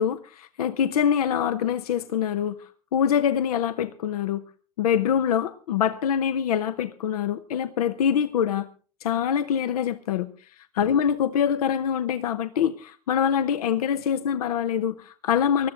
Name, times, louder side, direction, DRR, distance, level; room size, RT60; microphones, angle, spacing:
voice 1, 0.0-4.4 4.8-8.7 9.0-10.3 10.6-15.7, left 8 dB, 75° left, 12 dB, 0.8 m, -24 dB
20.0 x 12.5 x 3.8 m, 0.38 s
hypercardioid pair, 100°, 20 cm